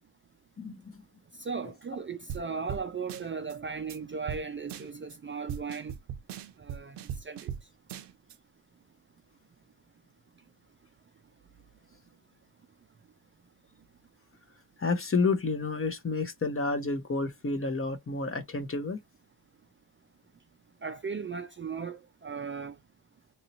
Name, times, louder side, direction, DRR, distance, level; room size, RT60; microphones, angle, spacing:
voice 1, 0.6-0.9 14.8-19.0, left 3 dB, 30° left, 0.9 m, -30 dB
voice 2, 1.4-6.0 6.6-7.5 20.8-22.8, right 5 dB, 30° right, 0.4 m, -37 dB
sound 1, 2.3-2.4 2.7-2.8 3.1-3.5 3.9-4.0 4.3-4.4 4.7-5.1 5.5-7.6 7.9-8.3, right 9 dB, 75° right, 0.6 m, -38 dB
3.0 x 2.7 x 2.8 m
cardioid pair, 90°, 42 cm